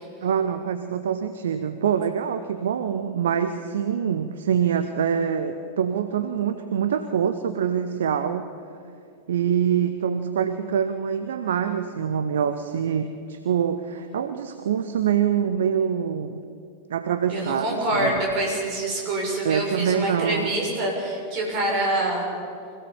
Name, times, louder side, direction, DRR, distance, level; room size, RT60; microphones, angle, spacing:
voice 1, 0.2-8.5 9.3-16.4 16.9-17.7 18.0-18.1 19.4-20.5, right 8 dB, 60° right, 9 dB, 0.9 m, -25 dB
voice 2, 17.3-22.2, right 1 dB, 45° right, 0 dB, 6.8 m, -25 dB
25.0 x 16.5 x 7.2 m, 2.5 s
figure-of-eight pair, 90°, 0 cm